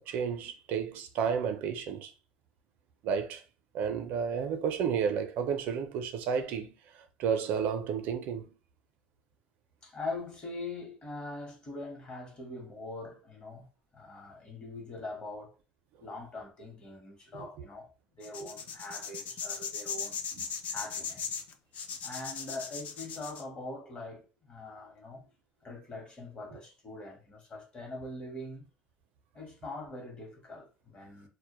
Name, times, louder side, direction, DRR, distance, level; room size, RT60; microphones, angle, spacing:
voice 1, 0.0-2.1 3.0-3.4 3.7-6.7 6.9-8.5 20.3-20.4, right 7 dB, 65° right, 0.4 m, -32 dB
voice 2, 9.8-13.7 13.9-15.6 16.0-20.2 20.7-21.3 22.0-25.3 25.6-28.7 29.3-31.3, left 2 dB, 35° left, 0.9 m, -42 dB
sound 1, 18.2-23.4, left 6 dB, 50° left, 0.4 m, -38 dB
2.1 x 2.0 x 2.9 m
cardioid pair, 115°, 3 cm